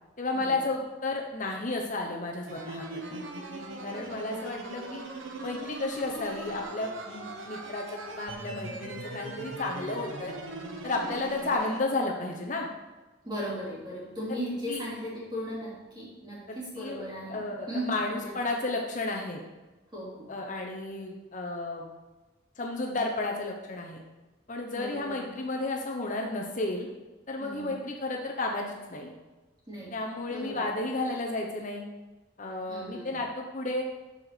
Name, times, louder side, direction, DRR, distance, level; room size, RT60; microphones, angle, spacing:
voice 1, 0.2-3.2 3.8-5.0 5.4-10.3 10.8-12.7 14.7-14.8 16.5-19.4 20.3-21.9 22.6-24.0 24.5-26.9 27.3-29.1 29.9-31.8 32.4-33.8, left 2 dB, 40° left, 1 dB, 0.8 m, -32 dB
sound 1, 2.5-11.8, right 2 dB, 75° right, 1.2 m, -40 dB
voice 2, 3.9-4.6 13.2-18.3 19.9-20.3 24.7-25.2 27.4-27.8 29.7-30.0 30.3-30.6 32.7-33.2, equal, 20° right, -6 dB, 3.0 m, -37 dB
7.4 x 5.8 x 6.7 m, 1.2 s
head